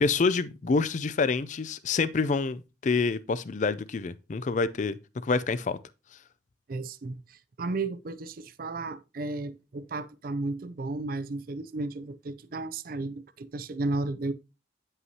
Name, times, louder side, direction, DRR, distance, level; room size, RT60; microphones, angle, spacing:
voice 1, 0.0-5.8, left 4 dB, 45° left, 0.4 m, -27 dB
voice 2, 6.7-14.3, right 2 dB, 50° right, 0.5 m, -34 dB
9.3 x 5.6 x 2.8 m
head